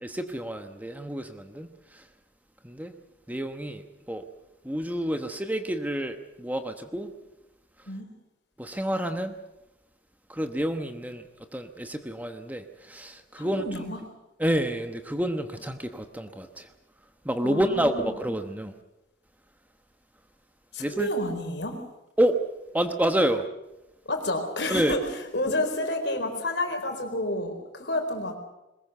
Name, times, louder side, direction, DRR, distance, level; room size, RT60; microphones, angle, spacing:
voice 1, 0.0-2.1 2.6-2.9 3.3-4.3 4.6-7.1 7.8-7.9 8.6-9.4 10.3-13.7 14.4-16.7 17.2-18.7 20.8-21.1 22.2-22.4 22.7-23.5 24.7-25.0, right 1 dB, 10° right, 7 dB, 1.0 m, -29 dB
voice 2, 13.4-14.0 17.4-18.1 20.7-21.7 24.1-25.0 25.3-28.4, left 1 dB, 60° left, 5 dB, 4.3 m, -30 dB
22.0 x 20.5 x 8.0 m, 0.97 s
head